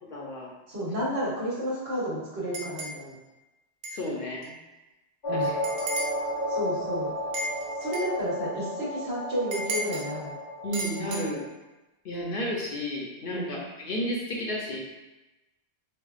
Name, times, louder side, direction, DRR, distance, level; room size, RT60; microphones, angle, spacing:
voice 1, 0.0-0.5 0.8-0.9 3.9-4.5 5.3-5.5 10.6-11.5 12.0-14.8, left 1 dB, 60° left, -3 dB, 0.7 m, -32 dB
voice 2, 0.7-3.2 5.3-5.5 6.5-7.1 7.8-10.4 13.3-13.5, equal, 70° right, -7 dB, 1.2 m, -31 dB
sound 1, 2.5-3.0 3.8-4.0 4.4-4.5 5.6-6.2 7.3-8.1 9.5-10.1 10.7-11.2, right 2 dB, 85° right, 0.9 m, -34 dB
sound 2, 5.2-11.5, equal, 45° left, 0.3 m, -32 dB
4.4 x 2.1 x 2.3 m, 1.0 s
omnidirectional pair, 1.1 m